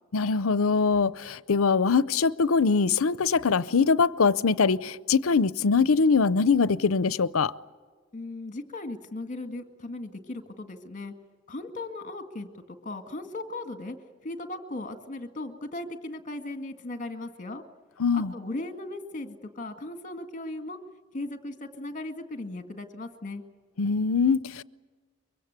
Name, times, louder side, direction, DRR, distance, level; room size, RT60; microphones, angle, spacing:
voice 1, 0.1-7.5 18.0-18.3 23.8-24.6, left 5 dB, 80° left, 0.6 m, -23 dB
voice 2, 8.1-11.1 11.5-14.0 14.2-17.6 18.1-20.8 21.1-23.4, left 2 dB, 35° left, 1.9 m, -37 dB
24.0 x 23.5 x 8.1 m
head